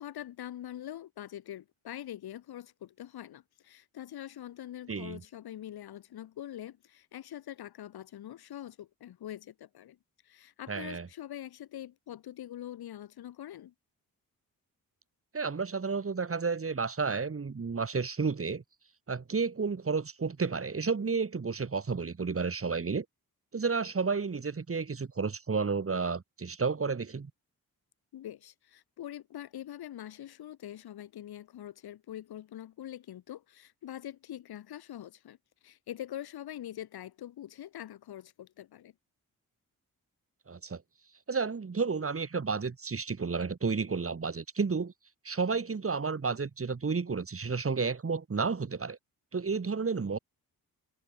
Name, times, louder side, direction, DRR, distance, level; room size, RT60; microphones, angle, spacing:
voice 1, 0.0-10.0 10.2-13.7 28.1-38.9, left 12 dB, 90° left, 5.4 m, -44 dB
voice 2, 4.9-5.2 10.7-11.1 15.3-18.6 19.1-23.0 23.5-27.3 40.5-40.8 41.3-44.9 45.2-49.0 49.3-50.2, right 5 dB, 35° right, 2.8 m, -31 dB
cardioid pair, 65°, 37 cm